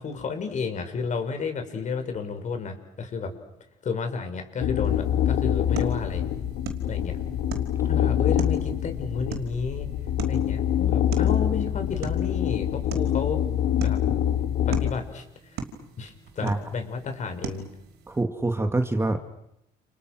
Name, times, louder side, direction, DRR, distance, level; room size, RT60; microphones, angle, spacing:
voice 1, 0.0-3.3 3.8-6.3 6.8-7.2 7.8-9.9 10.3-13.4 13.8-14.0 14.7-15.2 15.5-15.6 16.0-17.7, left 5 dB, 45° left, 6 dB, 6.1 m, -32 dB
sound 1, 4.6-14.9, left 10 dB, 85° left, 2.4 m, -25 dB
sound 2, 4.8-18.2, right 6 dB, 75° right, 5.0 m, -41 dB
voice 2, 18.1-19.2, right 2 dB, 15° right, 6 dB, 2.3 m, -25 dB
30.0 x 29.5 x 6.3 m, 0.80 s
cardioid pair, 110°, 17 cm